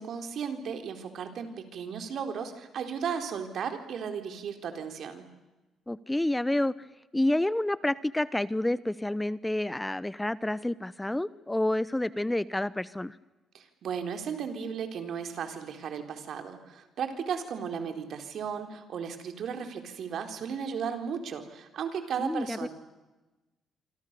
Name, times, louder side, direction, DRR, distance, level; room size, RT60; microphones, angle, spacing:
voice 1, 0.0-5.3 13.5-22.7, right 7 dB, 65° right, 6 dB, 4.1 m, -35 dB
voice 2, 5.9-6.7 7.1-13.2 22.2-22.7, left 1 dB, 10° left, 17 dB, 0.8 m, -29 dB
27.0 x 25.5 x 6.9 m, 1.1 s
cardioid pair, 90°, 0 cm